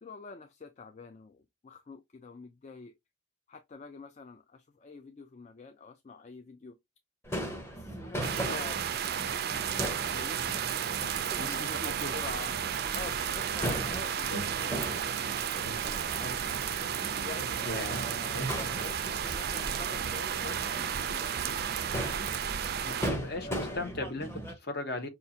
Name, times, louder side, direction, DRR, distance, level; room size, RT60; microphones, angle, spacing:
voice 1, 0.0-2.9 3.5-6.8 7.7-10.5 11.0-12.5 12.9-16.4 17.1-21.6 23.4-23.9, left 4 dB, 35° left, 0.3 m, -47 dB
Crowd / Fireworks, 7.2-24.5, equal, 10° left, 0.8 m, -39 dB
sound 1, 8.2-23.1, right 8 dB, 50° right, 0.4 m, -33 dB
voice 2, 11.4-11.7 12.0-12.2 17.6-18.0 22.9-25.1, left 2 dB, 50° left, 0.9 m, -37 dB
sound 2, 13.7-15.2 15.6-17.1 17.4-19.9, right 1 dB, 75° left, 1.8 m, -43 dB
5.5 x 2.4 x 2.7 m
head